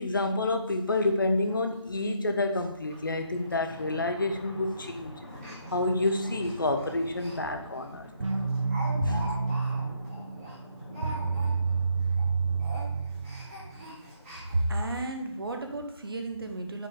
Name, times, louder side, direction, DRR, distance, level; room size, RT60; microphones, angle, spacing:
voice 1, 0.0-8.1 9.0-9.3, left 2 dB, 45° left, 7 dB, 0.7 m, -29 dB
Speech, 1.5-1.6 1.9-2.0 2.5-2.6 2.9-3.2 3.4-3.5 4.3-4.5 5.3-7.4 7.7-7.9 8.2-11.8 12.0-12.3 12.6-14.8 15.4-15.5 15.8-15.9, equal, 10° right, 2.5 m, -43 dB
Thunder, 2.7-14.5, equal, 20° left, 2.7 m, -46 dB
sound 1, 8.2-13.8, right 4 dB, 85° right, 1.0 m, -29 dB
voice 2, 14.5-16.9, right 2 dB, 50° right, 4 dB, 1.3 m, -31 dB
9.2 x 5.2 x 3.8 m, 0.86 s
figure-of-eight pair, 170°, 16 cm